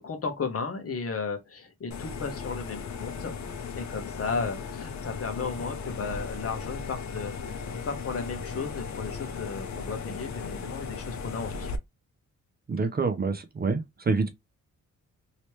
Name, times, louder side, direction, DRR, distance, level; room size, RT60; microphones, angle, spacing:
voice 1, 0.0-3.3 3.8-11.7, left 4 dB, 45° left, 1.2 m, -34 dB
sound 1, 1.9-11.8, left 5 dB, 65° left, 0.7 m, -37 dB
voice 2, 12.7-14.3, right 4 dB, 30° right, 0.6 m, -27 dB
3.1 x 2.9 x 3.1 m
wide cardioid pair, 140°, 31 cm